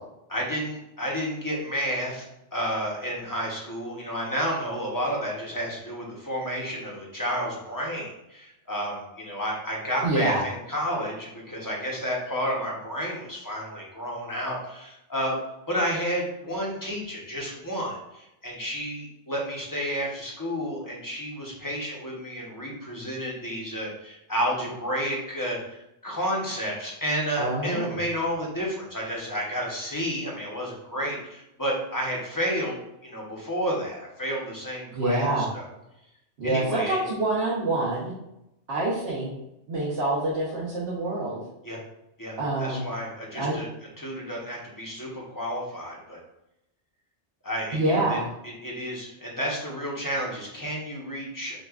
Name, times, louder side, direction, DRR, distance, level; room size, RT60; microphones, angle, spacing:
voice 1, 0.3-2.3 2.5-15.4 15.7-35.7 36.4-37.0 41.6-41.8 42.2-43.7 44.0-46.2 47.4-48.2 48.4-51.6, equal, 20° left, -3 dB, 0.8 m, -31 dB
voice 2, 10.0-10.4 27.4-28.0 34.9-35.5 36.4-38.1 38.7-39.3 39.7-41.4 42.4-42.9 43.3-43.5 47.7-48.3, right 2 dB, 60° right, -8 dB, 1.2 m, -26 dB
6.1 x 2.3 x 2.4 m, 0.85 s
omnidirectional pair, 1.2 m